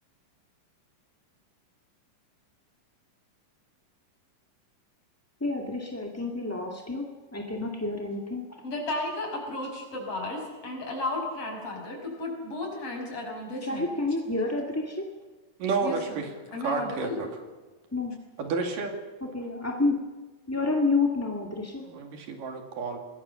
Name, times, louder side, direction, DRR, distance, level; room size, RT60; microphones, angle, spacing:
voice 1, 5.4-8.4 13.6-15.1 17.9-18.2 19.3-20.0 20.5-21.8, left 3 dB, 5° left, 0 dB, 1.1 m, -29 dB
voice 2, 8.6-13.9 15.8-16.2 16.5-17.2, left 2 dB, 45° left, 1 dB, 6.9 m, -34 dB
voice 3, 15.6-16.3 16.6-17.3 18.4-18.9 21.9-23.0, right 4 dB, 75° right, 4 dB, 4.1 m, -30 dB
26.0 x 20.5 x 7.0 m, 1.3 s
omnidirectional pair, 3.9 m